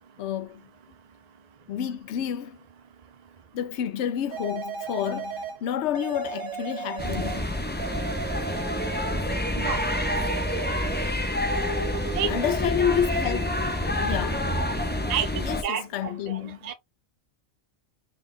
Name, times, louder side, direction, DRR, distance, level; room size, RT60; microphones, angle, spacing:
voice 1, 0.2-0.6 1.7-2.6 3.5-7.5 12.3-13.6 14.0-14.5 15.4-16.7, left 9 dB, 70° left, 0.9 m, -29 dB
sound 1, 4.3-5.6 5.9-7.5 7.8-9.3 9.6-11.2 11.5-12.5, right 6 dB, 85° right, 1.2 m, -35 dB
sound 2, 7.0-15.6, left 1 dB, 15° left, 0.4 m, -28 dB
voice 2, 15.6-16.7, right 8 dB, 45° right, 0.6 m, -30 dB
4.2 x 2.4 x 3.5 m
omnidirectional pair, 1.3 m